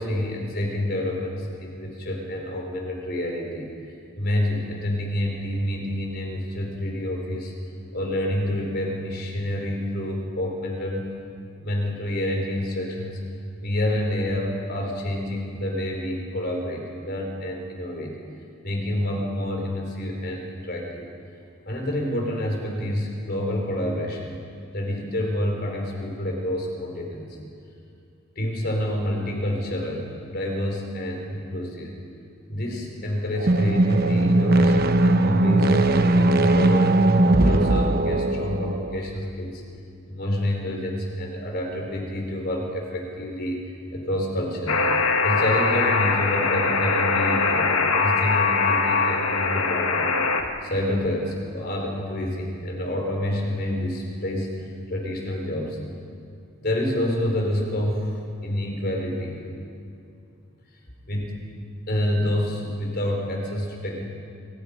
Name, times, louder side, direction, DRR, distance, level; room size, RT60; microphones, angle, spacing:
voice 1, 0.0-3.7 4.1-7.5 7.9-11.1 11.6-13.2 13.6-18.2 18.6-21.0 21.6-24.3 24.7-27.4 28.4-32.0 32.5-36.9 37.3-39.6 40.1-44.8 45.2-50.1 50.6-55.8 56.6-59.4 61.1-61.4 61.9-64.0, left 1 dB, 45° left, 1 dB, 4.5 m, -28 dB
sound 1, 33.4-39.0, right 2 dB, 45° right, 0.9 m, -19 dB
Alarm, 44.7-50.4, left 4 dB, 80° left, 2.0 m, -22 dB
26.0 x 25.5 x 5.3 m, 2.5 s
head